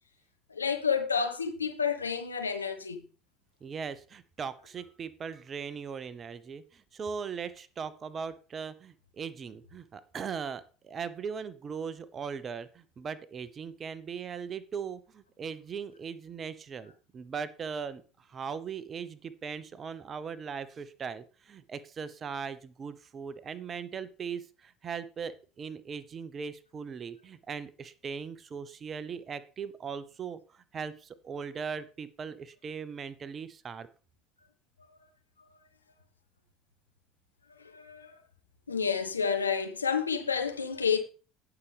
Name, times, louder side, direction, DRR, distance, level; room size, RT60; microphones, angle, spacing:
voice 1, 0.5-3.1 34.8-35.0 37.6-38.2 38.7-41.0, left 6 dB, 85° left, 1.1 m, -30 dB
voice 2, 3.6-33.9, right 6 dB, 35° right, 0.9 m, -39 dB
16.5 x 6.0 x 3.4 m
figure-of-eight pair, 60°, 0 cm